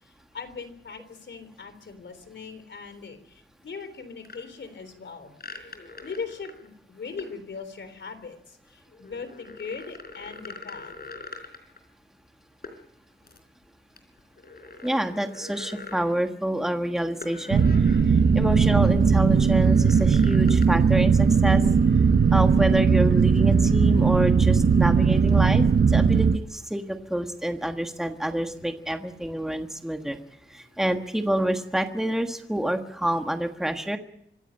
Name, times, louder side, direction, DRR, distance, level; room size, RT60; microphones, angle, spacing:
voice 1, 0.0-5.3 6.0-10.9 30.6-30.8, left 5 dB, 70° left, 10 dB, 3.7 m, -40 dB
sound 1, 4.2-4.4 5.4-6.7 7.2-7.4 8.9-11.8 12.6-12.8 13.2-13.4 14.0-16.1 17.2-18.1 18.5-18.6 19.4-20.7, left 3 dB, 55° left, 4.1 m, -43 dB
voice 2, 14.8-17.7 18.3-21.6 22.3-30.2 30.5-34.0, right 1 dB, ahead, 5 dB, 1.5 m, -27 dB
sound 2, 17.5-26.4, right 5 dB, 60° right, 0.9 m, -19 dB
25.5 x 15.0 x 8.8 m, 0.72 s
wide cardioid pair, 165°, 19 cm